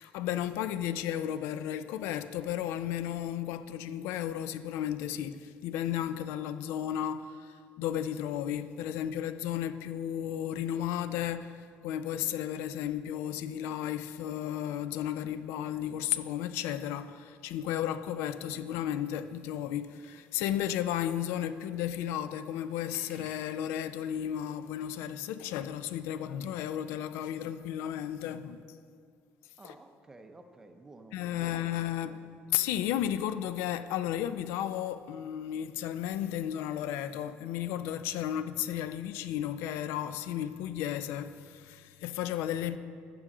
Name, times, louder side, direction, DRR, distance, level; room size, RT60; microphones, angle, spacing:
voice 1, 0.0-28.6 29.6-29.7 31.1-32.3 32.5-42.8, left 11 dB, 80° left, 0.4 m, -34 dB
sound 1, 19.7-24.8, left 3 dB, 50° left, 1.9 m, -62 dB
voice 2, 29.6-31.7 32.0-32.3, right 2 dB, 10° right, 0.5 m, -52 dB
15.0 x 6.1 x 3.7 m
cardioid pair, 175°, 4 cm